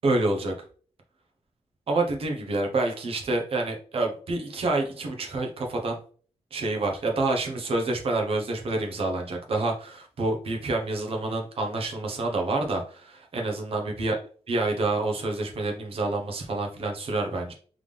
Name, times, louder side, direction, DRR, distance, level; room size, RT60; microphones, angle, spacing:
voice 1, 0.0-0.5 1.9-6.0 6.5-14.2 14.5-17.5, right 2 dB, 55° right, 2 dB, 1.1 m, -28 dB
3.6 x 3.5 x 3.4 m, 0.44 s
cardioid pair, 115°, 12 cm